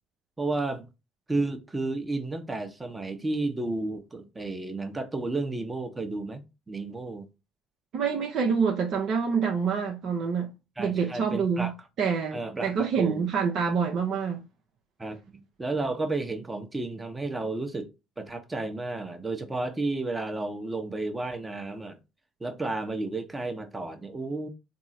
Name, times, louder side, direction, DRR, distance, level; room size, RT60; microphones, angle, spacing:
voice 1, 0.4-0.9 1.3-7.3 10.8-11.7 12.3-13.3 15.0-17.9 18.2-22.0 22.4-24.5, right 2 dB, 20° right, 0.8 m, -32 dB
voice 2, 7.9-10.5 10.8-11.7 12.0-14.4, right 6 dB, 55° right, 0.6 m, -26 dB
3.5 x 2.0 x 4.2 m
hypercardioid pair, 60°, 0 cm